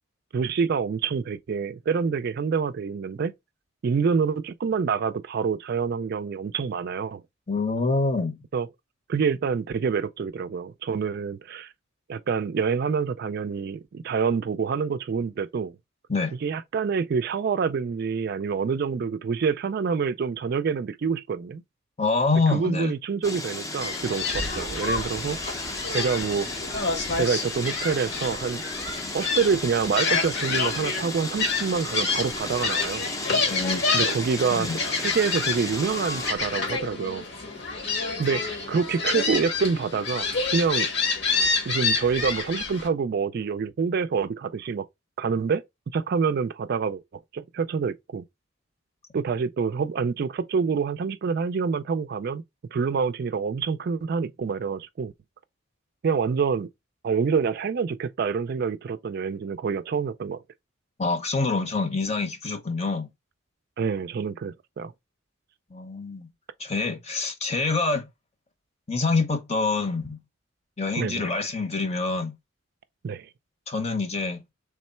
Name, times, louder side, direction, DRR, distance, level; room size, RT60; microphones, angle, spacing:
voice 1, 0.3-3.3 3.8-7.2 8.5-8.7 9.1-11.7 12.1-15.8 16.4-21.6 22.5-25.4 25.9-26.5 27.2-28.6 29.1-33.1 33.9-37.2 38.2-40.9 41.7-44.9 45.2-45.6 45.9-47.0 47.3-48.2 49.1-52.4 52.7-55.1 56.0-56.7 57.0-60.4 63.8-64.9 71.0-71.3 73.0-73.3, right 5 dB, 50° right, 0.3 m, -27 dB
voice 2, 7.5-8.3 16.1-16.3 22.0-22.9 33.5-33.8 34.5-34.8 61.0-63.1 65.7-66.3 66.6-68.0 68.9-70.2 70.8-72.3 73.7-74.4, left 3 dB, 35° left, 0.9 m, -26 dB
sound 1, 23.2-36.3, left 2 dB, 15° left, 0.6 m, -35 dB
Gull seagull, 23.8-42.9, left 4 dB, 60° left, 1.3 m, -28 dB
3.6 x 3.1 x 4.3 m
head